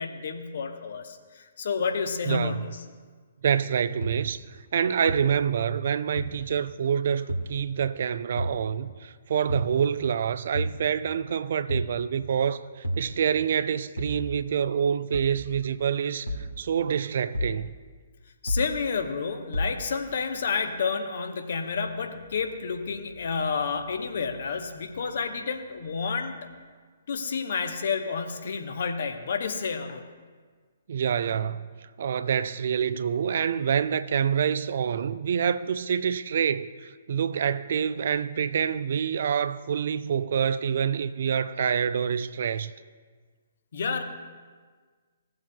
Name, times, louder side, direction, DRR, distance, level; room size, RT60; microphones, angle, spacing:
voice 1, 0.0-2.7 18.4-26.5 27.1-30.0 43.7-44.0, left 5 dB, 50° left, 0.9 m, -30 dB
voice 2, 2.3-2.6 3.4-4.4 4.7-17.7 30.9-31.7 32.0-42.7, right 7 dB, 50° right, 0.3 m, -27 dB
sound 1, 4.0-4.1 5.1-5.2 6.2-6.3 7.3-7.5 8.4-8.5 9.5-9.7 10.5-10.8 11.7-11.9 12.8-13.1 14.0-14.2 15.1-15.4 16.3-16.5 17.3-17.6 18.5-18.7 19.5-19.7, equal, 85° left, 1.5 m, -29 dB
17.5 x 7.7 x 2.2 m
figure-of-eight pair, 125°, 0 cm